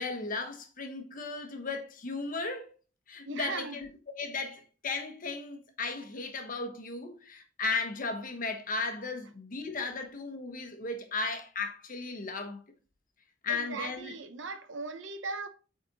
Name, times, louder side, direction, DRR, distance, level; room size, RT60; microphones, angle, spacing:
voice 1, 0.0-2.7 3.1-3.9 4.2-12.6 13.4-14.1, left 3 dB, 45° left, 1.3 m, -35 dB
voice 2, 3.2-3.8 13.5-15.5, right 4 dB, 85° right, 0.9 m, -38 dB
8.6 x 4.3 x 4.0 m
head